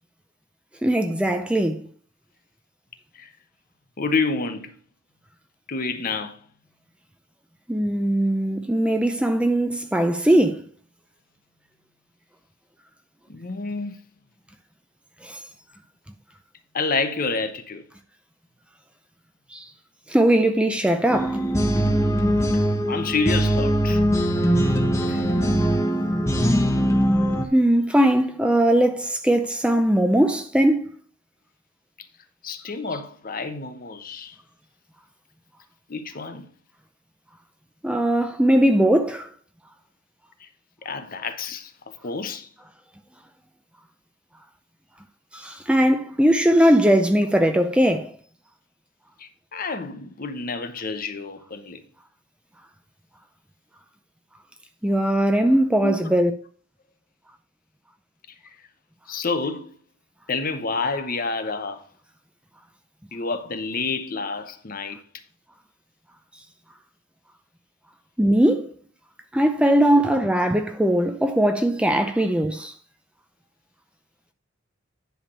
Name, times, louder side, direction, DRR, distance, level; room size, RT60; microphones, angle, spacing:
voice 1, 0.8-1.9 7.7-10.6 15.2-15.4 19.5-19.6 20.1-21.4 25.1-25.2 27.5-30.9 37.8-39.3 45.3-48.1 54.8-56.3 68.2-68.7 69.3-72.7, right 1 dB, 5° right, 0.5 m, -20 dB
voice 2, 4.0-4.7 5.7-6.4 13.3-14.0 16.7-17.8 22.9-24.0 32.4-34.4 35.9-36.5 40.4-40.5 40.8-41.7 42.0-42.5 49.2-51.8 55.8-56.0 59.1-59.8 60.3-61.8 63.1-65.0, left 4 dB, 45° left, 0.9 m, -28 dB
sound 1, 21.1-27.5, equal, 15° left, 1.0 m, -21 dB
10.0 x 3.5 x 6.7 m
head